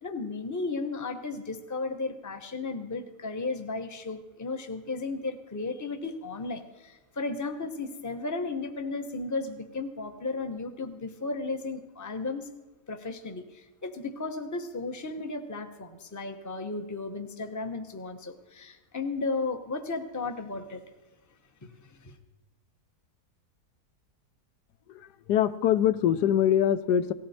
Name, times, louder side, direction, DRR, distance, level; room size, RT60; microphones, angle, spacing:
voice 1, 0.0-12.5 12.9-20.8 21.6-22.2, left 3 dB, 15° left, 7 dB, 0.7 m, -34 dB
voice 2, 24.9-27.1, left 10 dB, 85° left, 13 dB, 1.3 m, -24 dB
18.0 x 14.5 x 4.2 m, 1.2 s
omnidirectional pair, 1.7 m